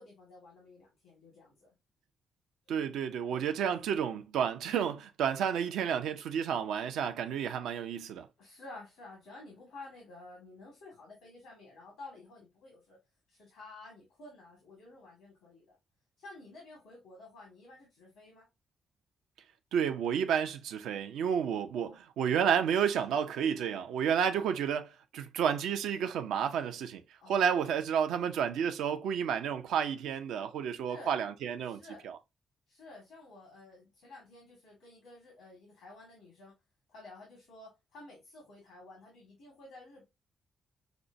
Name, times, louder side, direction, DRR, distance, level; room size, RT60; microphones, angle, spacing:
voice 1, 0.0-1.7 3.3-3.5 8.4-13.0 13.3-15.8 16.2-18.5 21.7-22.0 27.2-27.4 30.9-31.1 31.6-32.0 32.7-36.5 36.9-40.0, left 2 dB, 85° left, 1.7 m, -52 dB
voice 2, 2.7-8.3 19.7-27.0 27.3-32.2, right 8 dB, 80° right, 0.5 m, -31 dB
5.8 x 2.2 x 2.6 m
supercardioid pair, 50°, 0 cm